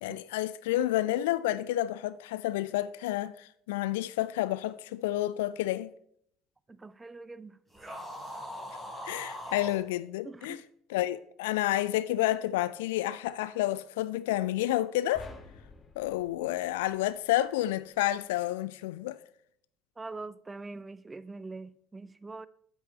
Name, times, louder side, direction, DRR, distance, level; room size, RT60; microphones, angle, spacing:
voice 1, 0.0-5.9 9.0-10.6 10.9-15.3 16.0-19.2, left 14 dB, 65° left, 0.3 m, -30 dB
voice 2, 6.7-7.6 10.2-10.7 20.0-22.5, right 3 dB, 15° right, 0.3 m, -43 dB
sound 1, 7.7-9.8, equal, ahead, 3.5 m, -41 dB
sound 2, 15.1-17.6, left 3 dB, 30° left, 1.2 m, -51 dB
8.6 x 8.2 x 3.1 m
figure-of-eight pair, 60°, 0 cm